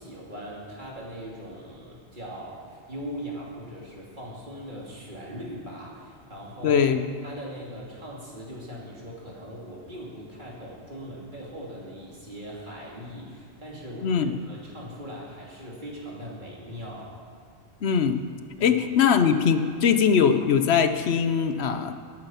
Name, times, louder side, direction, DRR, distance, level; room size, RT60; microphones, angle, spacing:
voice 1, 0.0-6.8 7.2-17.1 18.6-18.8, equal, 45° right, -4 dB, 2.9 m, -40 dB
voice 2, 6.6-7.1 14.0-14.3 17.8-18.2 18.6-21.9, left 7 dB, 75° left, 9 dB, 1.0 m, -21 dB
19.0 x 8.9 x 5.7 m, 2.1 s
omnidirectional pair, 1.1 m